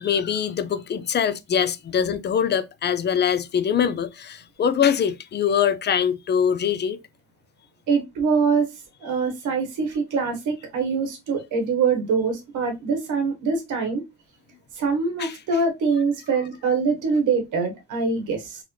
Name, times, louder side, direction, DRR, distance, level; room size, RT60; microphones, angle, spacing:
voice 1, 0.0-7.0 15.2-15.4, left 8 dB, 35° left, 0.4 m, -23 dB
voice 2, 7.9-8.6 9.0-14.0 14.8-18.6, right 5 dB, 80° right, 1.3 m, -24 dB
3.9 x 2.1 x 3.1 m
cardioid pair, 90°, 30 cm